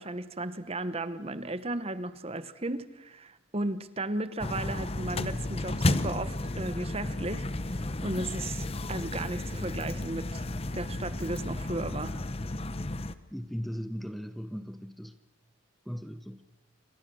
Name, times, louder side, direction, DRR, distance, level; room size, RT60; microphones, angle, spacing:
voice 1, 0.0-7.5 8.0-10.4 10.7-12.2, right 2 dB, 30° right, 1.0 m, -35 dB
sound 1, 4.4-13.1, left 2 dB, 30° left, 0.9 m, -33 dB
voice 2, 13.3-15.2 15.9-16.4, equal, ahead, 0.9 m, -38 dB
28.5 x 25.5 x 6.3 m
head